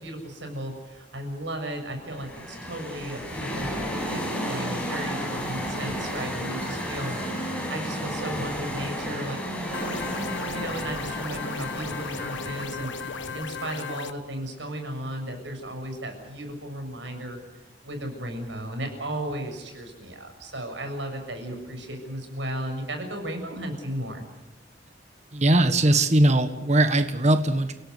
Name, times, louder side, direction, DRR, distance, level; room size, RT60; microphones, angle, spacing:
voice 1, 0.0-7.2 7.7-17.4 17.8-24.3, right 1 dB, 75° right, 5 dB, 7.0 m, -35 dB
sound 1, 2.0-13.3, equal, 5° left, 6.4 m, -33 dB
sound 2, 9.7-14.1, left 5 dB, 90° left, 1.3 m, -35 dB
voice 2, 25.3-27.7, right 1 dB, 40° right, 9 dB, 1.5 m, -20 dB
29.0 x 17.5 x 8.1 m, 0.99 s
head